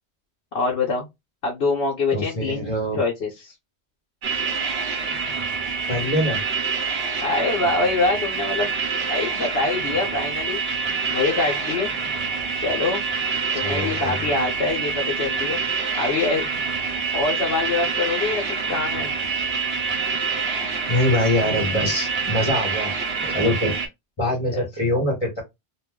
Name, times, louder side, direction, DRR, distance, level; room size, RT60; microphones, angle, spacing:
voice 1, 0.5-1.1 1.4-2.7 2.9-3.5 7.2-8.7 9.1-10.6 11.1-11.9 12.6-13.0 13.5-15.6 16.0-16.4 17.1-19.1 24.5-24.6, left 3 dB, 70° left, 1.0 m, -24 dB
voice 2, 2.1-3.0 5.9-6.4 13.6-14.2 20.9-22.9 23.2-23.7 24.2-25.4, left 1 dB, 25° left, 1.1 m, -23 dB
sound 1, 4.2-23.9, right 5 dB, 70° right, 1.0 m, -26 dB
2.5 x 2.2 x 3.5 m
omnidirectional pair, 1.1 m